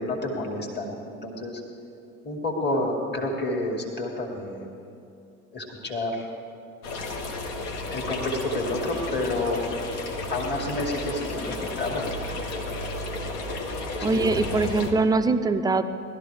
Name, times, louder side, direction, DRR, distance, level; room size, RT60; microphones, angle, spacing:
voice 1, 0.0-1.6 2.2-4.7 5.5-6.3 7.9-9.6 10.3-12.1 14.0-14.2, left 2 dB, 25° left, -1 dB, 2.2 m, -29 dB
sound 1, 6.8-14.9, left 2 dB, 60° left, 1.5 m, -33 dB
voice 2, 14.0-15.8, right 3 dB, 10° right, 9 dB, 0.4 m, -22 dB
19.0 x 12.5 x 3.4 m, 2.5 s
figure-of-eight pair, 65°, 42 cm